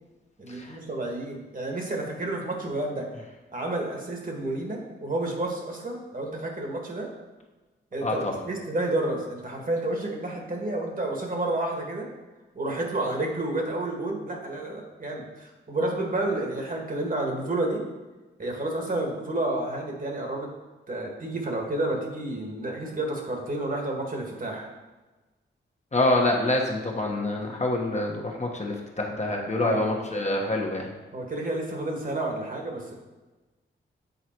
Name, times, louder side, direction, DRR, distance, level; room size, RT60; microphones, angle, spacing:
voice 1, 0.4-3.1 3.5-7.1 7.9-12.1 12.5-17.9 18.4-20.6 20.9-24.7 29.6-30.0 31.1-32.9, right 2 dB, 40° right, 1 dB, 1.7 m, -30 dB
voice 2, 8.0-8.3 25.9-30.9, left 2 dB, 35° left, 0 dB, 1.3 m, -26 dB
8.2 x 3.9 x 4.5 m, 1.2 s
cardioid pair, 65°, 21 cm